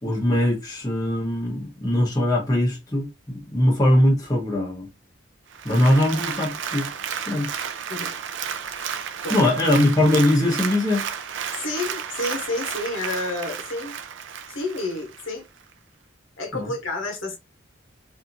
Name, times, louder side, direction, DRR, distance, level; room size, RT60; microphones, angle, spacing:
voice 1, 0.0-4.9 5.6-6.9 7.3-7.5 9.3-11.0 16.5-16.7, left 1 dB, 20° left, 0.9 m, -21 dB
Applause, 5.5-15.3 15.7-15.8, right 7 dB, 70° right, 0.4 m, -32 dB
voice 2, 11.6-13.9 14.5-15.4 16.4-17.4, left 2 dB, 85° left, 1.1 m, -30 dB
2.7 x 2.5 x 2.6 m
head